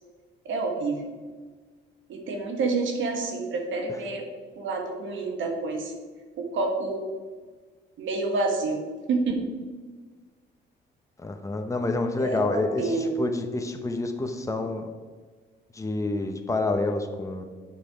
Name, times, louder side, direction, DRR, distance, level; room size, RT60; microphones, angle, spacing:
voice 1, 0.5-1.1 2.1-4.3 4.6-5.9 6.4-7.1 8.0-8.8 9.1-9.4 12.2-13.1, right 3 dB, 75° right, 3 dB, 1.8 m, -28 dB
voice 2, 11.2-14.9 15.7-17.4, left 2 dB, 15° left, 5 dB, 1.0 m, -28 dB
8.9 x 6.6 x 4.9 m, 1.4 s
cardioid pair, 90°, 20 cm